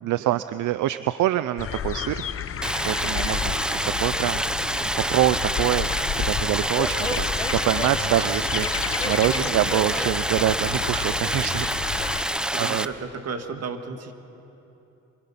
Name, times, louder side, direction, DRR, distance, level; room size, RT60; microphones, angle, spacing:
voice 1, 0.0-2.2 2.5-4.4 5.0-5.9 6.2-11.8 12.1-12.9, right 14 dB, 75° right, 13 dB, 0.6 m, -25 dB
sound 1, 1.6-12.2, left 8 dB, 45° left, 0.9 m, -32 dB
Stream, 2.6-12.8, right 1 dB, 5° right, 0.7 m, -27 dB
sound 2, 6.8-11.6, left 2 dB, 15° left, 1.3 m, -36 dB
voice 2, 12.5-14.1, right 4 dB, 55° right, 6 dB, 2.2 m, -34 dB
25.5 x 25.0 x 5.8 m, 3.0 s
cardioid pair, 90°, 30 cm